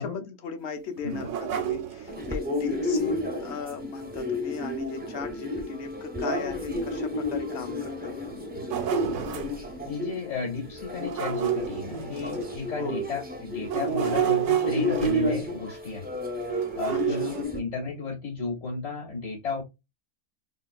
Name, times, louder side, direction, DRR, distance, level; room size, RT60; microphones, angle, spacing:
voice 1, 0.0-8.4 12.7-13.2 16.9-17.4, left 5 dB, 65° left, 0.9 m, -37 dB
sound 1, 1.0-2.4 4.6-4.7 5.2-5.3 6.1-6.2 6.7-6.8 8.3-9.6 10.9-12.8 13.6-15.5 16.5-17.4, right 10 dB, 75° right, 0.9 m, -30 dB
sound 2, 2.1-17.6, left 1 dB, 15° right, 0.4 m, -32 dB
voice 2, 9.8-16.1 16.8-19.6, left 4 dB, 85° left, 2.2 m, -33 dB
3.7 x 2.4 x 2.3 m
omnidirectional pair, 1.3 m